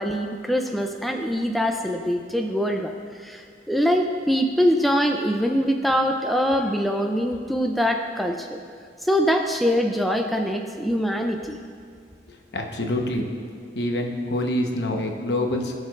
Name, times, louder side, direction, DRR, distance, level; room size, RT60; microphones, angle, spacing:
voice 1, 0.0-2.9 3.2-8.6 9.0-11.6, equal, ahead, 3 dB, 0.4 m, -23 dB
voice 2, 12.5-13.3 13.7-15.7, left 1 dB, 75° left, 2 dB, 1.0 m, -26 dB
18.5 x 6.5 x 2.4 m, 2.2 s
head